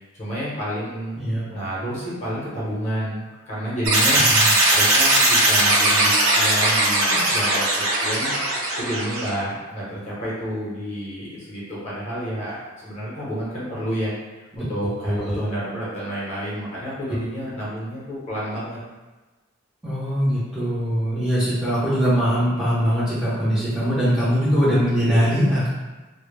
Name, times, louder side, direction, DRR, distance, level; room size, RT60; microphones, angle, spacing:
voice 1, 0.1-8.3 8.8-14.1 14.6-18.8, equal, 35° left, -8 dB, 0.7 m, -30 dB
sound 1, 3.9-9.3, right 2 dB, 85° right, 0.6 m, -19 dB
voice 2, 4.1-4.5 14.5-14.6 15.0-15.4 19.8-25.7, equal, 5° right, -13 dB, 0.5 m, -21 dB
2.1 x 2.0 x 3.1 m, 1.2 s
head